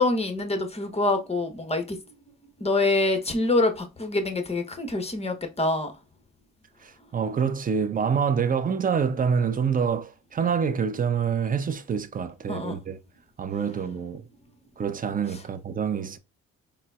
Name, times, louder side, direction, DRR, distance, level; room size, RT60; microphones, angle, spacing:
voice 1, 0.0-2.0 2.6-5.9 12.5-12.8, left 2 dB, 15° left, 0.8 m, -25 dB
voice 2, 6.8-13.0 13.4-14.3 14.8-16.2, right 6 dB, 25° right, 0.4 m, -26 dB
3.8 x 2.0 x 2.2 m
supercardioid pair, 60°, 38 cm